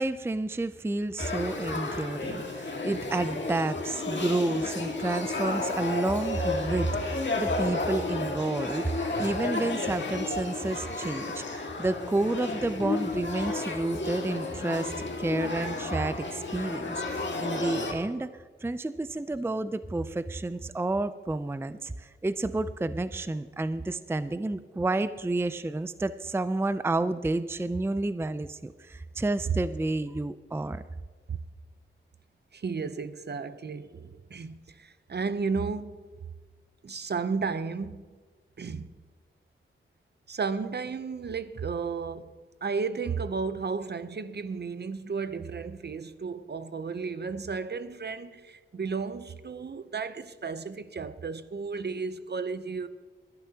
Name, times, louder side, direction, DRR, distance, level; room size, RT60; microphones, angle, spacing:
voice 1, 0.0-30.8, right 2 dB, 10° right, 0.5 m, -30 dB
Male speech man speaking / Child speech kid speaking / Conversation, 1.2-17.9, left 3 dB, 60° left, 1.9 m, -32 dB
voice 2, 32.5-36.0 36.8-38.0 38.6-38.9 40.3-42.3 42.6-52.9, right 5 dB, 50° right, 0.7 m, -33 dB
22.5 x 10.5 x 2.9 m
cardioid pair, 60°, 21 cm